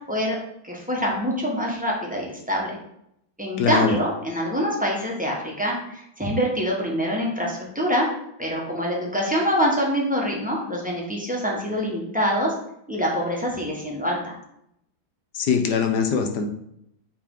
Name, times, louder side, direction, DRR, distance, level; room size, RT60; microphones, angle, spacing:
voice 1, 0.6-2.8 3.4-8.1 8.4-12.5 12.9-14.4, equal, 5° right, -3 dB, 0.8 m, -25 dB
voice 2, 3.6-3.9 15.3-16.5, left 6 dB, 65° left, 5 dB, 1.2 m, -22 dB
8.7 x 3.4 x 3.8 m, 0.76 s
omnidirectional pair, 2.3 m